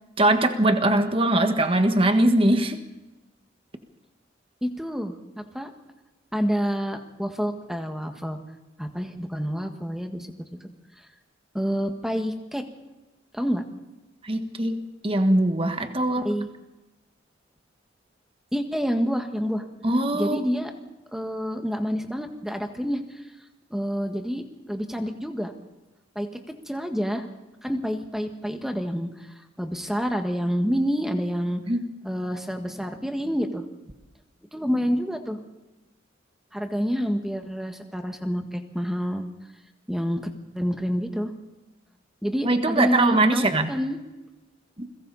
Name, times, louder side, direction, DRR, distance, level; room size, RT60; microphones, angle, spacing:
voice 1, 0.2-2.8 14.2-16.3 19.8-20.4 31.7-31.9 42.4-43.7 44.8-44.9, right 1 dB, 30° right, 7 dB, 1.5 m, -21 dB
voice 2, 4.6-5.7 6.3-8.4 8.8-10.5 11.5-12.6 13.3-13.6 16.2-16.5 18.5-19.6 20.1-20.7 21.1-23.2 23.7-25.5 26.2-26.3 26.7-27.3 27.6-31.7 32.0-33.7 34.5-35.4 36.5-39.3 39.9-41.3 42.2-44.0, equal, ahead, 5 dB, 1.7 m, -28 dB
29.0 x 22.0 x 4.2 m, 1.1 s
head